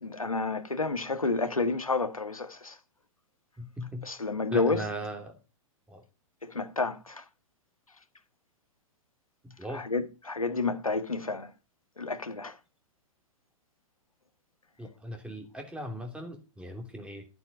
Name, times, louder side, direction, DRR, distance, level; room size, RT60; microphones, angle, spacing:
voice 1, 0.0-2.8 4.0-4.8 6.4-7.2 9.7-11.5 12.0-12.5, left 3 dB, 90° left, 1.6 m, -30 dB
voice 2, 3.6-4.1 4.5-5.4 5.9-6.0 9.6-9.9 14.8-17.3, equal, 5° right, 3.1 m, -38 dB
12.5 x 8.1 x 5.3 m
figure-of-eight pair, 110°, 17 cm